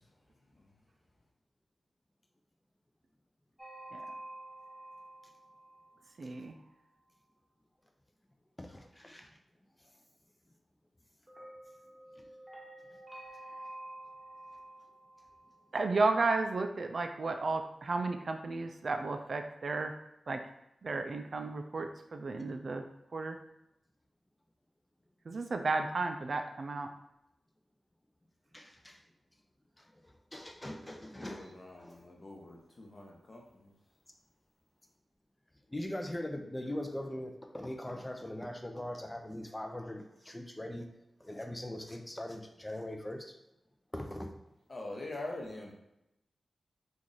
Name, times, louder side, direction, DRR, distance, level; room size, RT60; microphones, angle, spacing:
sound 1, 3.6-6.6 11.3-16.2, right 1 dB, 15° right, 1.2 m, -50 dB
voice 1, 6.2-6.6 15.7-19.9 20.3-20.4 20.8-22.8 23.1-23.4 25.3-26.9, right 3 dB, 65° right, 6 dB, 0.3 m, -33 dB
voice 2, 8.6-9.3 12.2-12.3 28.5-29.0 29.8-32.1 35.7-40.9 41.2-43.3 43.9-44.3, left 1 dB, 20° left, 4 dB, 0.6 m, -41 dB
voice 3, 30.9-33.7 44.7-45.7, left 2 dB, 50° left, -1 dB, 0.9 m, -44 dB
3.0 x 2.5 x 3.9 m, 0.86 s
cardioid pair, 40°, 0 cm